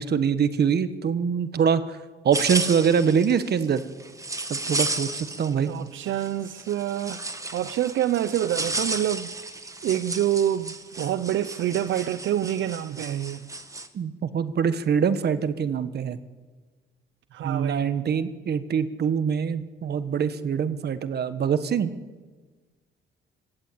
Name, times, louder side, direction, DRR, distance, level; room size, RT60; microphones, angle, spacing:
voice 1, 0.0-2.0 2.2-3.8 4.5-5.7 13.9-16.2 17.4-21.9, right 7 dB, 55° right, 1.4 m, -24 dB
sound 1, 2.3-5.7 6.0-13.9, right 2 dB, 15° right, 1.7 m, -33 dB
voice 2, 5.7-7.3 7.5-13.5 17.3-17.9, right 11 dB, 75° right, 0.7 m, -27 dB
26.0 x 16.0 x 8.7 m
cardioid pair, 90°, 20 cm